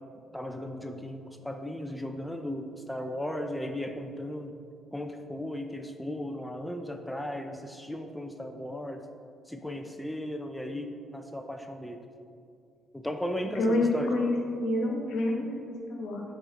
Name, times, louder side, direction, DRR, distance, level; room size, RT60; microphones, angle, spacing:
voice 1, 0.3-4.5 4.9-9.0 9.5-12.0 12.9-14.1, left 1 dB, 5° left, 5 dB, 0.4 m, -36 dB
voice 2, 13.5-16.2, left 2 dB, 75° left, 0 dB, 1.2 m, -28 dB
6.5 x 5.0 x 4.1 m, 2.4 s
cardioid pair, 90°, 0 cm